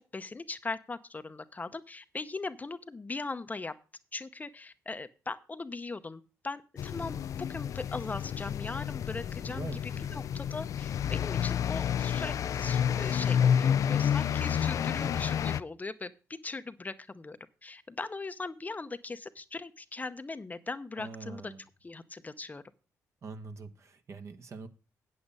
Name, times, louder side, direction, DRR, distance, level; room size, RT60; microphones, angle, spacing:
voice 1, 0.1-3.7 4.1-21.5 21.8-22.6, left 3 dB, 25° left, 0.7 m, -40 dB
sound 1, 6.8-15.6, left 8 dB, 60° left, 0.4 m, -30 dB
voice 2, 9.5-10.2 21.0-21.6 23.2-24.7, right 4 dB, 50° right, 1.3 m, -44 dB
8.5 x 8.1 x 5.4 m
cardioid pair, 70°, 6 cm